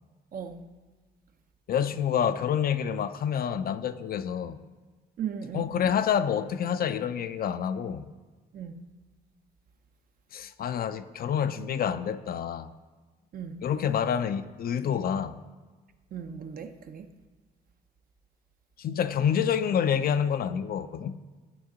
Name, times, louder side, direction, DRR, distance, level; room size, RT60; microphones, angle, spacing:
voice 1, 0.3-0.6 5.2-5.7 8.5-8.8 13.3-13.6 16.1-17.1, right 7 dB, 50° right, 0.6 m, -37 dB
voice 2, 1.7-4.6 5.5-8.1 10.3-12.7 13.6-15.4 18.8-21.2, left 8 dB, 55° left, 0.4 m, -28 dB
12.0 x 4.3 x 3.8 m
cardioid pair, 70°, 18 cm